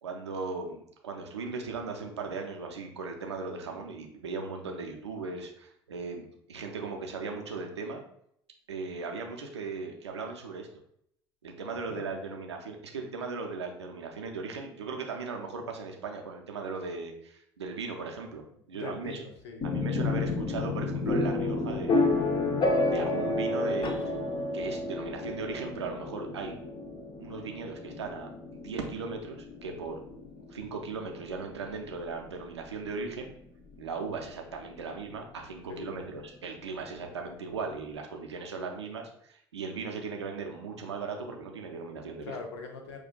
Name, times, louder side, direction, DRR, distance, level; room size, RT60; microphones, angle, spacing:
voice 1, 0.0-8.0 8.7-10.7 11.4-18.4 18.7-19.2 19.6-22.1 22.9-24.2 24.5-26.6 27.2-30.0 30.5-33.3 33.8-42.4, right 4 dB, 85° right, 2 dB, 0.5 m, -38 dB
voice 2, 11.8-12.3 18.7-19.7 35.7-36.0 42.2-43.0, left 4 dB, 75° left, 4 dB, 0.6 m, -42 dB
sound 1, 19.6-33.4, left 2 dB, 35° left, 0.7 m, -31 dB
5.8 x 2.4 x 2.2 m, 0.71 s
figure-of-eight pair, 65°, 14 cm